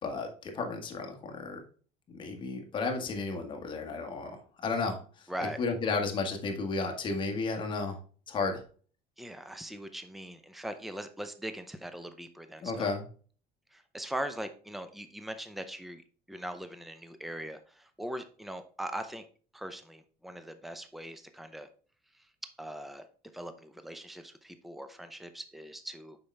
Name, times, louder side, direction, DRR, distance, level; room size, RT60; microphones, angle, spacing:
voice 1, 0.0-1.6 2.1-5.3 5.6-8.0 8.3-8.6 12.6-13.0, left 4 dB, 35° left, 3 dB, 1.6 m, -33 dB
voice 2, 5.3-5.6 9.2-12.9 13.7-16.0 16.3-19.2 19.5-21.7 22.1-22.3 22.6-23.1 23.3-26.2, right 1 dB, ahead, 9 dB, 0.6 m, -40 dB
6.9 x 5.4 x 3.4 m, 0.41 s
cardioid pair, 130°, 15 cm